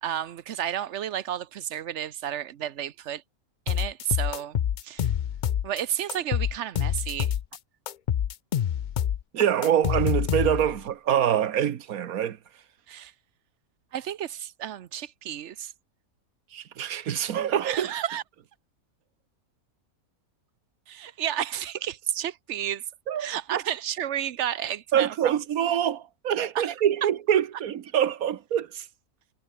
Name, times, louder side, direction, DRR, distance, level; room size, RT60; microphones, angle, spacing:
voice 1, 0.0-3.2 3.7-4.6 4.8-5.1 5.6-7.4 12.9-13.1 13.9-15.7 17.6-18.2 20.9-22.9 23.2-25.4 26.5-26.7, right 10 dB, 60° right, 1.0 m, -32 dB
sound 1, 3.7-5.8 6.1-7.6 7.9-10.8, left 9 dB, 70° left, 0.4 m, -27 dB
voice 2, 9.3-12.4 16.5-17.9 23.1-23.6 24.9-28.9, right 10 dB, 85° right, 1.4 m, -25 dB
omnidirectional pair, 1.5 m